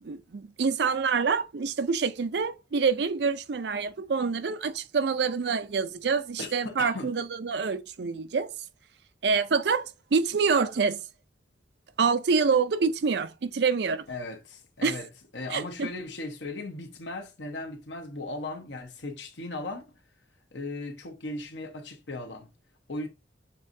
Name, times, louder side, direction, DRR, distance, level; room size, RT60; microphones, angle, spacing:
voice 1, 0.0-8.5 9.2-11.0 12.0-14.0 14.8-15.0 15.5-15.9, right 5 dB, 65° right, 0.5 m, -26 dB
voice 2, 6.4-7.1 14.1-15.1 15.3-19.8 20.5-22.5 22.9-23.1, left 2 dB, 80° left, 1.0 m, -37 dB
6.6 x 2.7 x 2.6 m
head